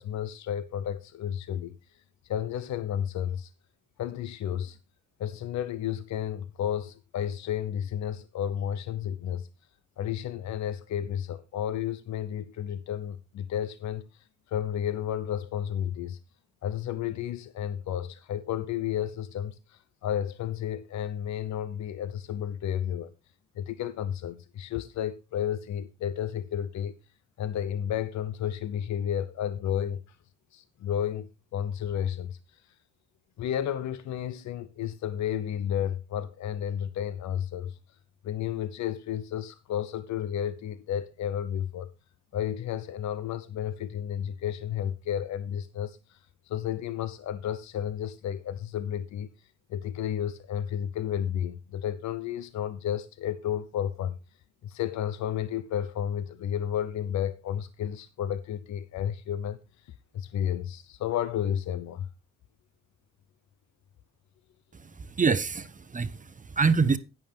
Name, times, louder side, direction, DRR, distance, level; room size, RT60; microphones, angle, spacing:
voice 1, 0.0-1.7 2.2-3.5 4.0-4.8 5.2-9.5 10.0-16.2 16.6-23.1 23.6-27.0 27.4-30.2 30.5-32.6 33.4-37.8 38.2-41.9 42.3-46.2 46.5-49.3 49.7-54.2 54.6-62.1, left 10 dB, 65° left, 0.8 m, -32 dB
voice 2, 64.7-67.0, right 5 dB, 25° right, 0.9 m, -26 dB
10.5 x 9.7 x 3.4 m
cardioid pair, 90°, 30 cm